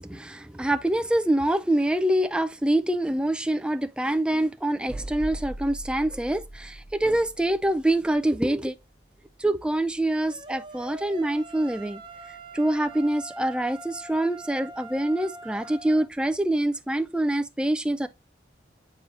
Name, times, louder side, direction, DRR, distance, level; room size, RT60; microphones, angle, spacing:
voice 1, 0.0-6.8 7.0-8.7 9.4-12.0 12.5-18.1, right 1 dB, 5° right, 0.3 m, -25 dB
sound 1, 4.9-9.4 11.2-11.3, right 1 dB, 50° left, 1.7 m, -40 dB
sound 2, 10.3-16.1, right 3 dB, 25° right, 0.7 m, -43 dB
7.1 x 5.5 x 2.5 m
head